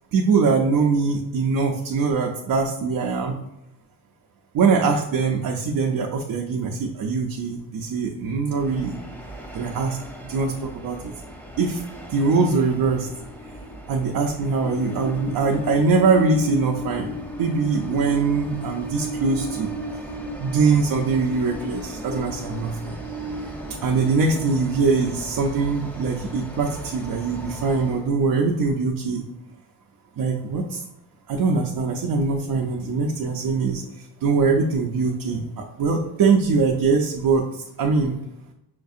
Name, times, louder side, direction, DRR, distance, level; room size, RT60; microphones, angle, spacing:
voice 1, 0.1-3.3 4.5-9.0 9.5-10.0 10.2-11.1 11.6-11.8 12.1-13.1 13.9-17.1 17.4-19.7 20.4-23.0 23.8-29.2 30.2-30.8 31.3-33.8 34.2-38.2, right 4 dB, 65° right, 1 dB, 0.5 m, -22 dB
Train, 8.5-28.0, left 1 dB, 5° left, 0.6 m, -35 dB
5.7 x 2.6 x 2.4 m, 0.86 s
wide cardioid pair, 130°, 38 cm